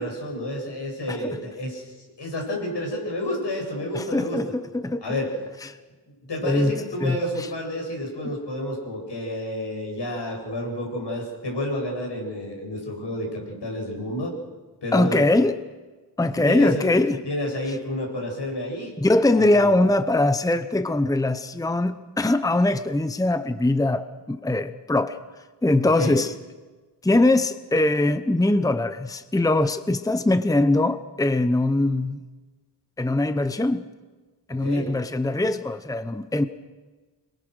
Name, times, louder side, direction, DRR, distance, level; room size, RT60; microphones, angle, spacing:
voice 1, 0.0-1.8 2.2-4.5 5.0-5.3 6.3-14.3 14.8-15.2 16.3-16.9 17.2-18.9 19.3-19.7 25.8-26.2 34.5-34.9, left 1 dB, 85° left, 1 dB, 7.8 m, -30 dB
voice 2, 3.9-5.0 5.6-5.8 6.4-7.5 8.2-8.3 14.9-15.6 16.2-17.2 19.0-25.2 25.6-26.3 27.0-32.2 33.0-33.9 34.5-36.5, left 2 dB, 10° left, 11 dB, 0.8 m, -22 dB
27.5 x 23.0 x 6.5 m, 1.3 s
wide cardioid pair, 125°, 41 cm